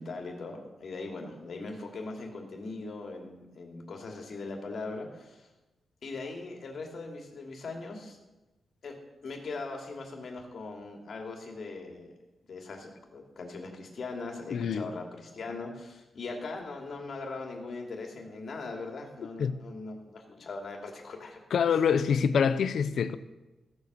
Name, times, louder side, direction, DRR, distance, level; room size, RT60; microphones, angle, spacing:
voice 1, 0.0-5.5 6.0-8.2 8.8-9.0 9.2-12.1 12.5-21.4, left 3 dB, 55° left, 2.8 m, -40 dB
voice 2, 14.5-14.9 19.4-19.6 21.5-23.2, left 6 dB, 70° left, 0.7 m, -25 dB
15.0 x 8.1 x 6.9 m
wide cardioid pair, 130°, 0 cm